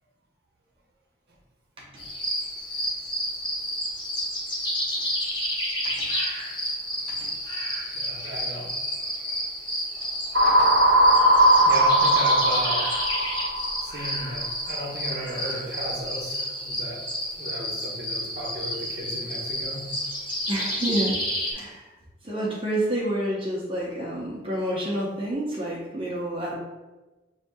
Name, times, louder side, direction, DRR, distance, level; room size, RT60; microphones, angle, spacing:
sound 1, 2.0-21.5, equal, 25° left, 0.8 m, -30 dB
voice 1, 7.9-8.7 11.6-12.8 13.8-17.0 17.4-19.9, right 1 dB, 55° right, -3 dB, 0.9 m, -35 dB
sound 2, 10.3-14.2, right 1 dB, 80° right, 0.8 m, -19 dB
voice 2, 20.5-21.2 21.5-21.8 22.2-26.6, right 1 dB, 30° right, -5 dB, 0.7 m, -28 dB
6.6 x 2.7 x 2.2 m, 1.1 s
head